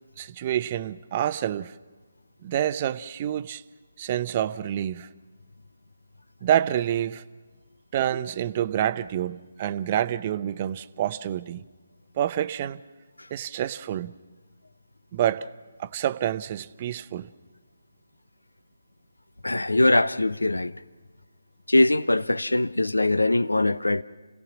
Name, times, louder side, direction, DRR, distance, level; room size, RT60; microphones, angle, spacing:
voice 1, 0.2-1.7 2.4-3.6 4.0-5.1 6.4-7.2 7.9-11.6 12.2-12.8 13.3-14.2 15.1-15.5 15.8-17.3, right 11 dB, 35° right, 0.7 m, -27 dB
voice 2, 19.4-20.7 21.7-24.0, left 2 dB, 90° left, 0.8 m, -22 dB
29.0 x 17.0 x 6.1 m
figure-of-eight pair, 150°, 0 cm